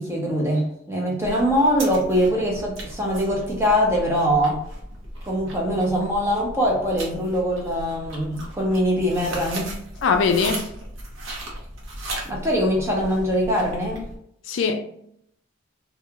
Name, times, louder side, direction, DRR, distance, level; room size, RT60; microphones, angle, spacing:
voice 1, 0.0-4.6 5.2-9.7 12.2-14.1, equal, 15° right, 0.7 m, -22 dB
sound 1, 1.2-14.2, right 1 dB, 70° right, 0.8 m, -37 dB
voice 2, 10.0-10.7 14.5-14.8, left 5 dB, 70° left, 0.3 m, -21 dB
2.4 x 2.3 x 2.8 m
head